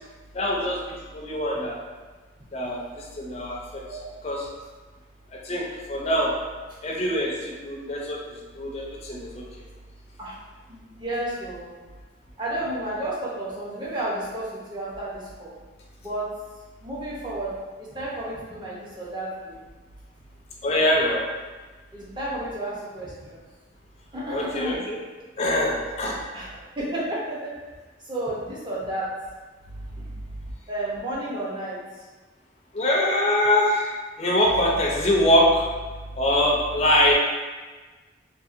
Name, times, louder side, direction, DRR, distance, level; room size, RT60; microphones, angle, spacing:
voice 1, 0.3-1.8 2.5-4.5 5.3-6.3 6.8-9.4 20.6-21.2 24.3-25.0 25.4-26.2 32.7-35.7 36.2-37.1, left 1 dB, 35° left, -2 dB, 0.4 m, -24 dB
voice 2, 11.0-11.7 12.4-15.5 16.0-16.3 16.8-19.6 21.9-23.4 24.1-24.8 26.3-27.5 28.1-29.1 30.0-30.1 30.7-31.8, right 1 dB, 25° right, -7 dB, 0.6 m, -32 dB
2.7 x 2.6 x 2.5 m, 1.3 s
head